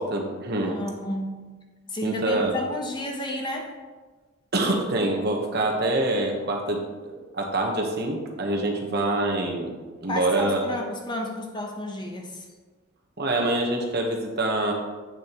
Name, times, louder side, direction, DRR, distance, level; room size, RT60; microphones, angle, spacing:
voice 1, 0.0-0.8 2.0-2.6 4.5-6.8 7.1-9.7 10.0-10.7 13.2-14.7, right 2 dB, 50° right, 1 dB, 1.1 m, -25 dB
voice 2, 0.6-1.5 1.9-3.7 8.6-8.7 10.0-12.5, left 1 dB, 20° left, 1 dB, 0.8 m, -32 dB
8.6 x 6.9 x 3.0 m, 1.3 s
head